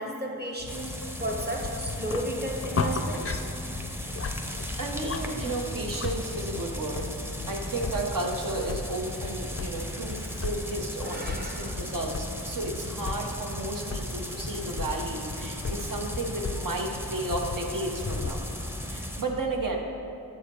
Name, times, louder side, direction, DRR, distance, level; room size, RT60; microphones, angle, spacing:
voice 1, 0.0-3.5 11.0-11.8, right 1 dB, 25° right, -1 dB, 1.0 m, -34 dB
sound 1, 0.6-18.4, left 4 dB, 40° left, 0.4 m, -37 dB
sound 2, 0.7-19.2, equal, 5° right, 0.7 m, -37 dB
voice 2, 4.8-7.1 7.5-18.5 18.9-19.8, right 2 dB, 65° right, 1 dB, 0.9 m, -33 dB
7.8 x 4.9 x 4.4 m, 2.8 s
wide cardioid pair, 50°, 35 cm